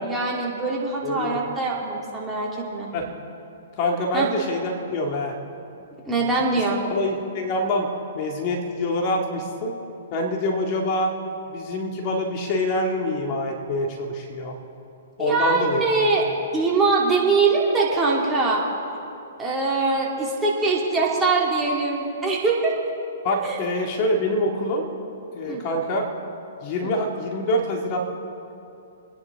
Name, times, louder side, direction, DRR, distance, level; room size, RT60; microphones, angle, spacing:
voice 1, 0.0-2.9 4.1-4.3 6.1-6.8 15.2-16.3 16.5-18.6 19.4-22.7 23.4-23.6 25.5-25.6 26.8-26.9, right 3 dB, 10° right, -4 dB, 2.8 m, -23 dB
voice 2, 1.0-1.4 2.9-3.1 3.8-5.4 6.5-6.6 6.9-7.9 8.2-9.8 10.1-11.1 11.5-14.6 15.2-16.3 23.2-24.9 25.3-26.1 26.6-28.0, left 1 dB, 40° left, 1 dB, 2.0 m, -25 dB
28.0 x 10.5 x 3.6 m, 2.8 s
hypercardioid pair, 130°, 0 cm